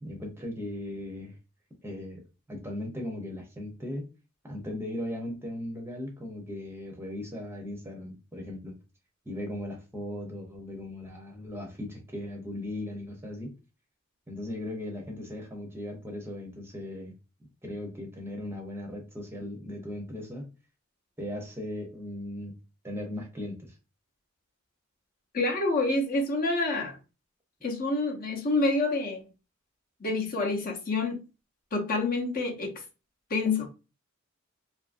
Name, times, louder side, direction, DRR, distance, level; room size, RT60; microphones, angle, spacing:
voice 1, 0.0-1.4 1.8-2.2 2.5-4.1 4.4-8.7 9.3-13.5 14.3-17.1 17.6-20.5 21.2-22.6 22.8-23.8, left 1 dB, 10° right, 0.6 m, -38 dB
voice 2, 25.3-27.0 27.6-29.2 30.0-31.2 31.7-32.7 33.3-33.7, left 3 dB, 45° left, 0.7 m, -27 dB
2.7 x 2.4 x 2.4 m
head